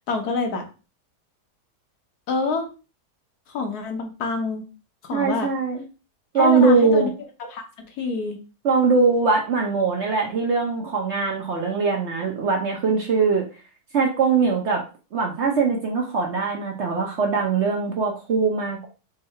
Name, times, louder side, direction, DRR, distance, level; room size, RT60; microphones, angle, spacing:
voice 1, 0.1-0.7 2.3-2.7 3.5-4.6 5.0-5.5 6.3-7.1 7.4-8.4, left 4 dB, 70° left, 4 dB, 1.4 m, -27 dB
voice 2, 5.1-5.8 6.3-7.1 8.6-13.5 13.9-14.8 15.1-18.9, right 4 dB, 55° right, 1 dB, 0.9 m, -21 dB
3.7 x 2.7 x 4.2 m, 0.33 s
omnidirectional pair, 1.7 m